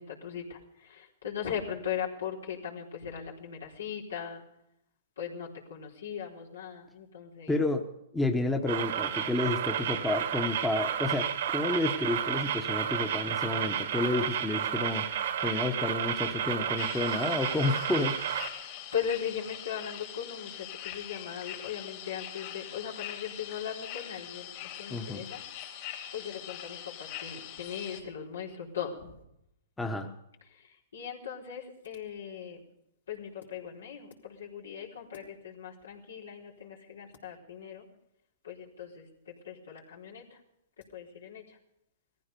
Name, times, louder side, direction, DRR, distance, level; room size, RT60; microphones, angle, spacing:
voice 1, 0.0-4.4 5.2-7.6 18.6-25.4 26.1-29.2 30.5-32.6 33.1-37.8 38.4-40.4 40.9-41.6, left 8 dB, 85° left, -2 dB, 4.2 m, -39 dB
voice 2, 7.5-7.9 8.1-15.1 15.4-18.2 24.9-25.3 29.8-30.1, left 2 dB, 5° left, 5 dB, 1.2 m, -30 dB
sound 1, 8.7-18.5, right 9 dB, 65° right, 1.5 m, -31 dB
sound 2, 16.8-28.0, left 11 dB, 50° left, 3.3 m, -43 dB
18.0 x 15.0 x 5.3 m, 0.80 s
hypercardioid pair, 135°, 0 cm